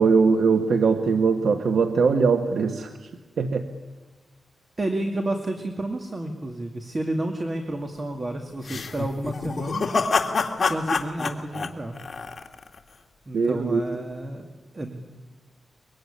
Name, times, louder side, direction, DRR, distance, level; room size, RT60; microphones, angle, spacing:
voice 1, 0.0-2.9 3.4-3.7 13.3-14.0, right 5 dB, 75° right, 7 dB, 1.4 m, -21 dB
voice 2, 4.8-9.8 10.5-12.0 13.3-14.5 14.7-14.9, right 1 dB, 30° right, 5 dB, 2.2 m, -30 dB
sound 1, 8.6-12.8, left 4 dB, 40° left, 2.3 m, -26 dB
24.0 x 23.0 x 10.0 m, 1.3 s
wide cardioid pair, 105°, 0 cm